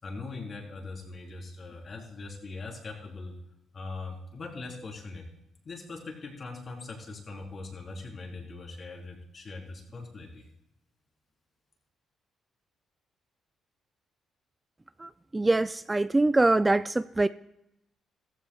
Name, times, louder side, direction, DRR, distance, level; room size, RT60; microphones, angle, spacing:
voice 1, 0.0-3.3 3.7-5.2 5.6-10.4, left 3 dB, 45° left, 0 dB, 3.8 m, -41 dB
voice 2, 15.0-17.3, right 2 dB, 15° right, 14 dB, 0.3 m, -24 dB
15.0 x 14.5 x 2.4 m, 0.84 s
cardioid pair, 90°, 0 cm